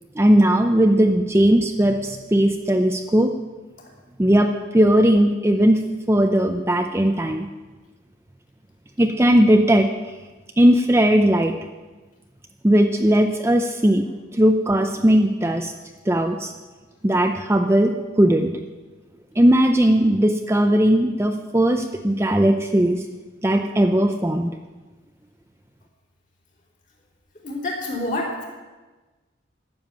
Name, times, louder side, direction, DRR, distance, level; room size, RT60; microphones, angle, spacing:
voice 1, 0.2-3.3 4.2-5.8 6.1-7.5 9.0-9.9 10.6-11.5 12.6-14.1 14.3-15.7 16.1-16.5 17.0-17.9 18.2-18.5 19.4-23.0 23.4-24.5, right 1 dB, 15° right, 5 dB, 0.5 m, -18 dB
voice 2, 27.4-28.5, left 1 dB, 40° left, -1 dB, 3.1 m, -27 dB
12.0 x 7.2 x 9.0 m, 1.2 s
head